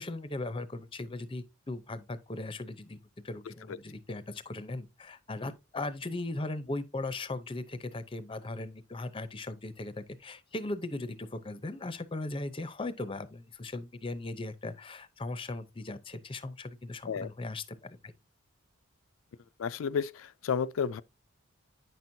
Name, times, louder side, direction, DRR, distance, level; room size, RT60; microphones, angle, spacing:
voice 1, 0.0-3.0 3.2-18.1, left 2 dB, 25° left, 0.6 m, -38 dB
voice 2, 19.6-21.0, left 6 dB, 70° left, 0.4 m, -31 dB
9.2 x 6.0 x 2.7 m
head